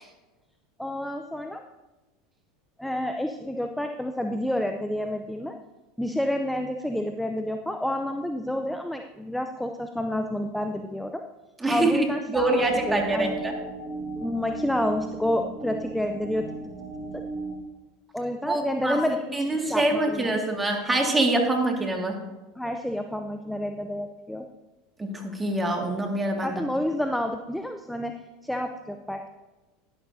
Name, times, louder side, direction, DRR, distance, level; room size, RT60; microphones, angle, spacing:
voice 1, 0.8-1.6 2.8-5.5 6.0-11.2 11.7-12.5 12.9-13.3 14.2-16.5 18.1-19.2 19.5-20.4 22.6-24.5 26.4-28.1 28.4-29.3, left 1 dB, 5° left, 5 dB, 0.6 m, -29 dB
voice 2, 11.6-13.5 18.5-19.0 19.3-22.2 25.0-26.6, right 2 dB, 15° right, 2 dB, 2.1 m, -25 dB
sound 1, 12.3-17.5, right 2 dB, 65° right, 2.1 m, -36 dB
11.5 x 10.5 x 2.8 m, 1.1 s
hypercardioid pair, 90°, 0 cm